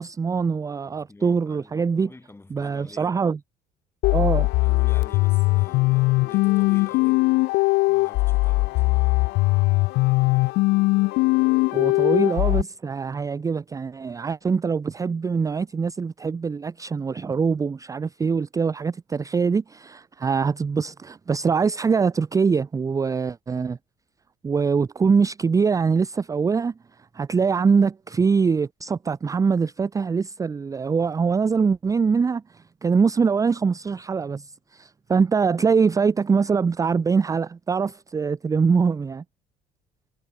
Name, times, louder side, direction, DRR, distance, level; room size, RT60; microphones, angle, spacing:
voice 1, 0.0-2.1 2.5-3.4 4.1-4.5 11.7-23.8 24.4-26.7 27.1-39.2, right 5 dB, 20° right, 0.4 m, -23 dB
voice 2, 0.9-3.2 4.6-7.3 7.9-9.1, left 2 dB, 15° left, 5.2 m, -47 dB
sound 1, 4.0-12.6, left 22 dB, 85° left, 0.4 m, -20 dB
cardioid pair, 110°, 17 cm